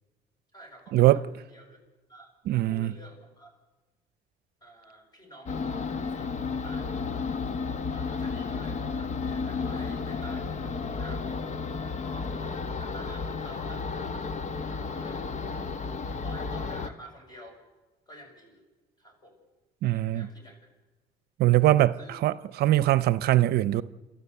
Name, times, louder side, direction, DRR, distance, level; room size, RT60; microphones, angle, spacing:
voice 1, 0.5-1.8 2.1-3.6 4.6-7.0 7.9-11.5 11.9-14.1 14.5-15.3 16.0-17.6 18.1-18.6 19.0-19.4 19.9-20.6 22.0-22.1, right 1 dB, 25° left, 7.1 m, -50 dB
voice 2, 2.5-2.9 19.8-20.3 21.4-22.0 22.2-23.8, right 15 dB, 70° right, 0.7 m, -22 dB
sound 1, 5.5-16.9, left 4 dB, 45° left, 1.2 m, -32 dB
27.5 x 14.0 x 8.3 m
cardioid pair, 110°, 17 cm